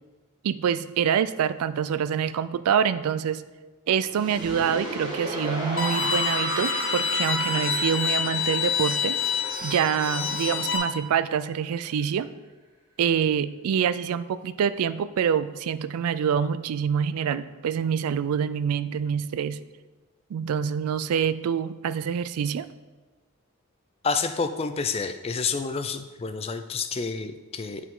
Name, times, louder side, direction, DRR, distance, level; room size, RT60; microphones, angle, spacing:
voice 1, 0.4-3.4 3.9-9.2 9.6-12.3 13.0-19.6 20.3-22.7, right 7 dB, 80° right, 14 dB, 0.3 m, -26 dB
sound 1, 4.0-10.9, equal, 20° right, 1.2 m, -34 dB
Bowed string instrument, 5.8-10.8, left 6 dB, 65° left, 1.0 m, -27 dB
voice 2, 24.0-27.8, left 5 dB, 25° left, 9 dB, 0.3 m, -29 dB
8.0 x 4.7 x 3.7 m, 1.3 s
head